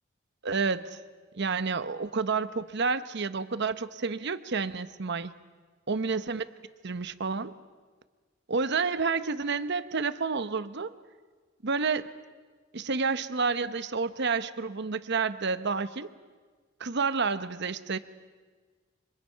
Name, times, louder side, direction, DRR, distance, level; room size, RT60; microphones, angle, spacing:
voice 1, 0.4-1.0 1.3-5.3 5.9-6.4 6.8-7.5 8.5-10.9 11.6-12.1 12.7-16.1 16.8-18.0, right 4 dB, 55° right, 12 dB, 0.9 m, -29 dB
28.0 x 25.5 x 5.7 m, 1.4 s
head